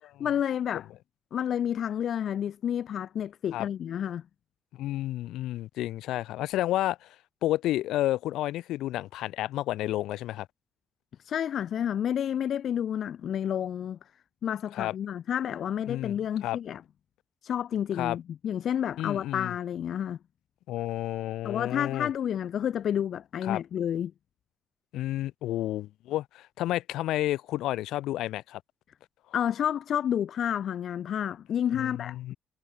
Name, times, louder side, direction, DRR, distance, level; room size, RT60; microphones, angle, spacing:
voice 1, 0.0-0.9 1.3-4.2 11.2-14.0 14.4-16.8 17.4-20.2 21.4-24.1 29.3-32.2, left 9 dB, 65° left, 4.6 m, -30 dB
voice 2, 4.8-7.1 7.4-10.5 14.7-14.9 15.9-16.2 16.4-16.6 18.0-18.2 19.0-19.5 20.7-22.1 23.5-23.6 24.9-28.6 31.7-32.4, left 14 dB, 85° left, 6.2 m, -31 dB
cardioid pair, 90°, 0 cm